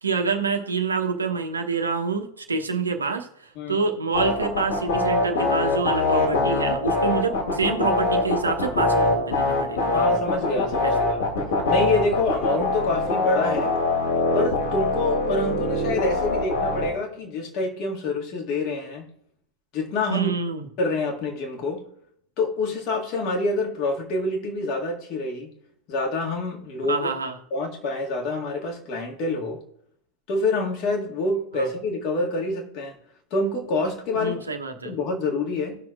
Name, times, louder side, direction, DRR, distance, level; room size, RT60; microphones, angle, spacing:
voice 1, 0.0-3.3 3.7-10.2 10.8-10.9 20.1-20.7 26.9-27.4 31.6-31.7 34.1-34.9, right 5 dB, 75° right, 4 dB, 1.1 m, -27 dB
sound 1, 4.1-16.9, left 3 dB, 60° left, 3.1 m, -23 dB
voice 2, 9.9-11.2 11.7-13.8 14.3-19.1 19.7-20.3 20.8-21.8 22.4-25.5 25.9-27.1 27.5-29.6 30.3-33.0 33.3-34.4 34.8-35.8, left 2 dB, 40° left, 0 dB, 2.0 m, -27 dB
18.0 x 6.1 x 2.4 m, 0.72 s
figure-of-eight pair, 90°, 0 cm